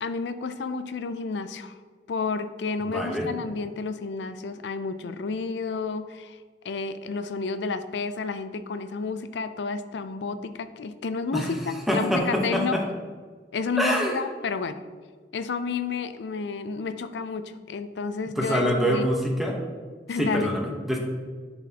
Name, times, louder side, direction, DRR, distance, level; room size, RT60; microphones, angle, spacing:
voice 1, 0.0-1.8 2.1-6.4 6.6-12.8 13.5-14.8 15.3-19.1 20.1-20.5, left 4 dB, 75° left, 11 dB, 0.4 m, -31 dB
voice 2, 2.9-3.3 11.3-11.5 11.9-12.8 13.8-14.2 18.4-19.6 20.2-21.0, equal, ahead, -1 dB, 0.9 m, -25 dB
10.5 x 4.1 x 2.8 m, 1.5 s
head